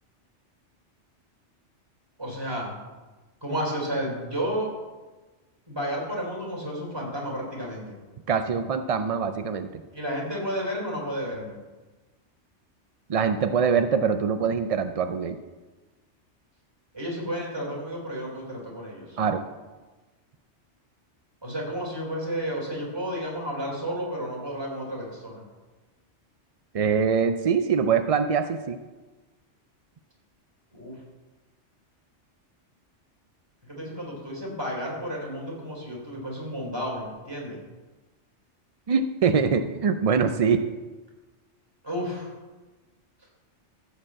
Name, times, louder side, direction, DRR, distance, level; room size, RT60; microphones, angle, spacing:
voice 1, 2.2-2.8 3.4-4.7 5.7-8.0 9.9-11.6 16.9-19.2 21.4-25.4 30.7-31.0 33.6-37.6 41.8-42.3, equal, 20° right, -3 dB, 3.4 m, -32 dB
voice 2, 8.3-9.7 13.1-15.4 19.2-19.4 26.7-28.8 38.9-40.7, right 6 dB, 55° right, 9 dB, 0.4 m, -23 dB
14.0 x 5.2 x 7.4 m, 1.2 s
omnidirectional pair, 1.2 m